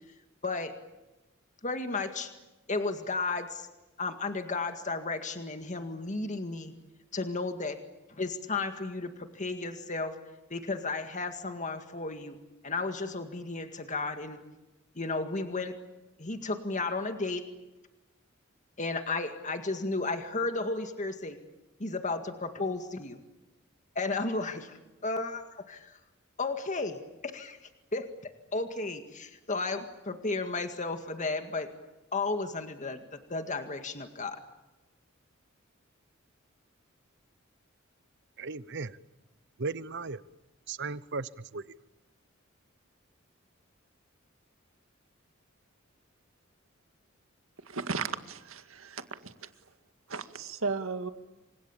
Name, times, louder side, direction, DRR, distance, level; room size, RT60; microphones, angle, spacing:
voice 1, 0.4-0.7 1.6-2.3 2.7-3.7 4.0-6.7 7.1-7.8 8.1-10.2 10.5-12.4 12.6-14.4 15.0-15.8 16.2-17.5 18.8-21.4 21.8-23.2 24.0-25.4 25.7-26.0 26.4-27.6 27.9-31.7 32.1-34.4, left 3 dB, 35° left, 2.0 m, -33 dB
voice 2, 38.4-39.0 39.6-40.2 40.7-41.6, right 4 dB, 60° right, 0.9 m, -36 dB
voice 3, 47.7-49.5 50.1-51.1, right 4 dB, 85° right, 2.0 m, -35 dB
29.5 x 25.5 x 7.3 m
head